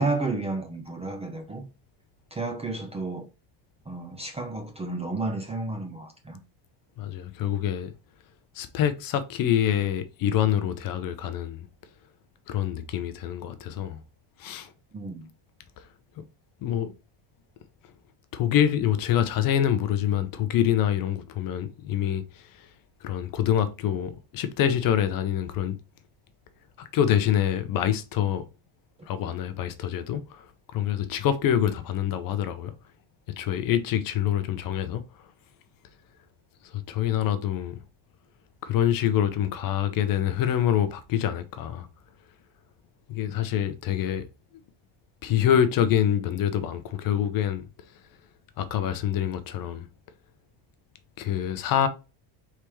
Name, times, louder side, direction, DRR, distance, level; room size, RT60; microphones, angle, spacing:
voice 1, 0.0-1.7 2.3-3.3 3.9-6.4 14.9-15.3, right 3 dB, 15° right, 0.5 m, -31 dB
voice 2, 7.0-7.9 8.5-11.7 12.5-14.0 14.4-14.7 15.8-15.9 16.6-16.9 18.3-22.7 23.0-25.7 26.8-28.5 29.1-32.7 33.4-35.3 36.6-37.8 38.6-41.9 43.1-44.2 45.2-47.7 48.6-49.9 51.2-51.9, left 10 dB, 45° left, 0.6 m, -26 dB
4.6 x 3.5 x 3.0 m
cardioid pair, 145°, 49 cm